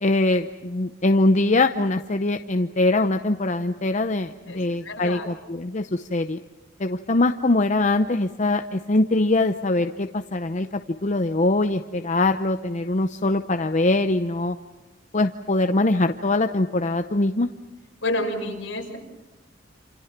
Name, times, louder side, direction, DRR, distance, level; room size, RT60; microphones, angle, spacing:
voice 1, 0.0-6.4 6.8-14.6 15.1-17.5, left 2 dB, 35° left, 8 dB, 0.7 m, -22 dB
voice 2, 4.8-5.3 18.0-19.0, left 1 dB, 65° left, 1 dB, 6.1 m, -28 dB
28.5 x 28.0 x 5.9 m, 1.1 s
head